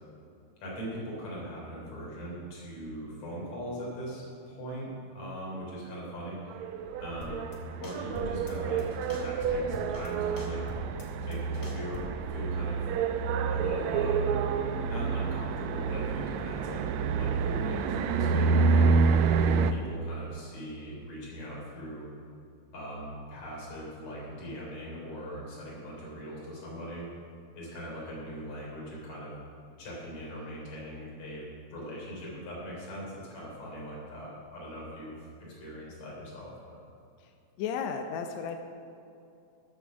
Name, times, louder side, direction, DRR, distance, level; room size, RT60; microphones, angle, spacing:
voice 1, 0.6-6.6 7.0-7.4 7.8-8.8 9.2-10.6 11.2-12.0 12.3-12.8 13.5-14.2 14.9-18.9 19.7-22.1 22.7-27.1 27.5-29.3 29.8-35.2 35.6-36.8, equal, 55° left, -5 dB, 4.7 m, -40 dB
sound 1, 6.5-19.7, right 5 dB, 90° right, 1.6 m, -28 dB
sound 2, 7.2-7.6 7.8-8.5 8.8-10.1 10.4-12.3, left 2 dB, 40° left, 1.2 m, -42 dB
voice 2, 37.6-38.6, left 6 dB, 75° left, 5 dB, 1.7 m, -33 dB
13.5 x 7.5 x 6.1 m, 2.6 s
omnidirectional pair, 3.8 m